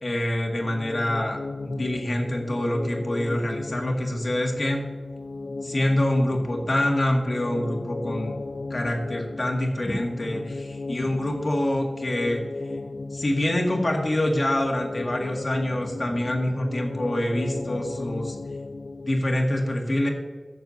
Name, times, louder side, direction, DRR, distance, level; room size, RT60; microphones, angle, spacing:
voice 1, 0.0-4.9 5.6-8.4 8.7-12.4 13.1-18.4 19.0-20.1, left 1 dB, 50° left, 1 dB, 1.9 m, -26 dB
sound 1, 0.6-19.4, left 3 dB, 75° left, 0.4 m, -36 dB
14.5 x 6.8 x 2.7 m, 1.4 s
wide cardioid pair, 75°, 0 cm